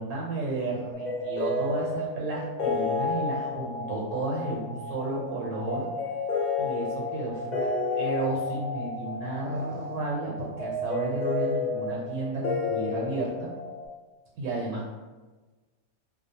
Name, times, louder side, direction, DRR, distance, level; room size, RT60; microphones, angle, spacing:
voice 1, 0.0-5.9 6.6-7.7 8.0-13.5 14.4-14.9, right 2 dB, 80° right, -4 dB, 1.1 m, -32 dB
sound 1, 0.9-13.9, left 3 dB, 85° left, 0.4 m, -31 dB
2.6 x 2.0 x 2.7 m, 1.2 s
omnidirectional pair, 1.5 m